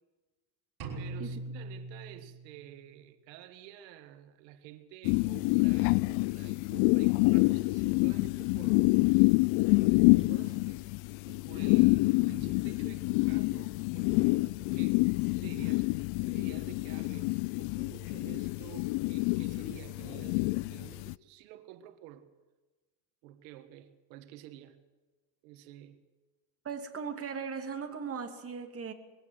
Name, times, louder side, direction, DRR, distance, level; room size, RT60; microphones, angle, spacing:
sound 1, 0.8-2.8, right 2 dB, 50° right, 5.5 m, -41 dB
voice 1, 1.0-8.9 10.1-10.9 11.3-22.3 23.2-24.8 25.4-26.0, right 12 dB, 90° right, 1.7 m, -50 dB
sound 2, 5.0-21.1, left 25 dB, 65° left, 0.6 m, -27 dB
voice 2, 26.6-28.9, right 6 dB, 30° right, 2.9 m, -38 dB
22.0 x 16.5 x 7.9 m
cardioid pair, 125°, 49 cm